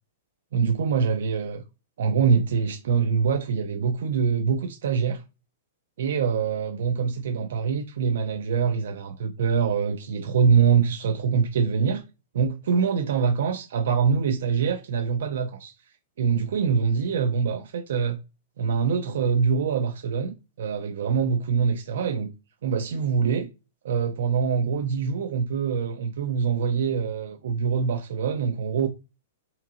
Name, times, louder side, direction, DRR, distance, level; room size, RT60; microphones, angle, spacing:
voice 1, 0.5-1.6 2.0-5.2 6.0-12.0 12.3-15.7 16.2-18.2 18.6-22.3 22.6-23.5 23.8-28.9, right 6 dB, 70° right, 0.6 m, -24 dB
3.8 x 3.0 x 3.7 m
hypercardioid pair, 165°, 0 cm